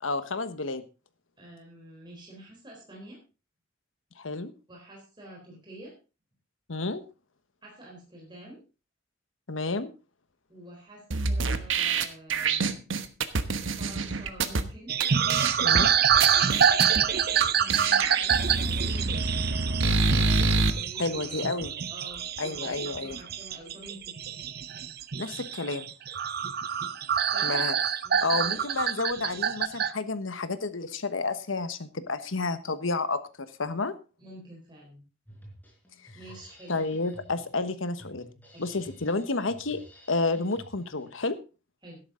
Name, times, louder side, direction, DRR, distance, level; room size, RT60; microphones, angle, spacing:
voice 1, 0.0-0.8 4.2-4.5 6.7-7.0 9.5-9.9 15.6-15.9 21.0-21.7 22.4-23.2 25.2-25.9 27.4-27.7 28.2-33.9 36.7-38.3 38.6-39.8 40.1-41.4, left 3 dB, 80° left, 12 dB, 1.3 m, -30 dB
voice 2, 1.4-3.2 4.7-5.9 7.6-8.6 10.5-12.8 13.4-15.8 16.8-19.2 19.7-20.3 20.7-21.4 21.9-24.1 27.3-27.6 28.0-28.6 34.2-35.0 36.1-36.8 38.5-38.8 41.8-42.0, right 1 dB, 25° right, -2 dB, 4.1 m, -47 dB
sound 1, 11.1-14.6 15.0-15.1 15.3-15.8 16.2-17.0 17.4-17.5 17.7-20.7, right 3 dB, 75° right, 1.2 m, -26 dB
sound 2, 14.9-29.9, right 8 dB, 50° right, 0.7 m, -26 dB
Drum kit, 35.2-41.2, equal, 10° left, 4.8 m, -52 dB
13.0 x 11.0 x 3.9 m, 0.32 s
head